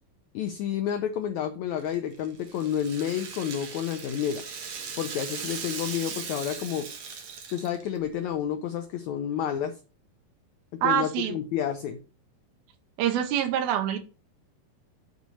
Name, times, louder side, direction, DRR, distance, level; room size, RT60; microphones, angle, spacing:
voice 1, 0.3-4.4 5.0-6.9 7.5-9.8 10.8-12.0, left 9 dB, 85° left, 7 dB, 1.6 m, -30 dB
Rattle (instrument), 1.8-8.0, right 6 dB, 55° right, 1.8 m, -39 dB
voice 2, 10.8-11.4 13.0-14.0, right 10 dB, 90° right, 6 dB, 2.9 m, -25 dB
9.4 x 4.1 x 6.2 m, 0.33 s
omnidirectional pair, 4.2 m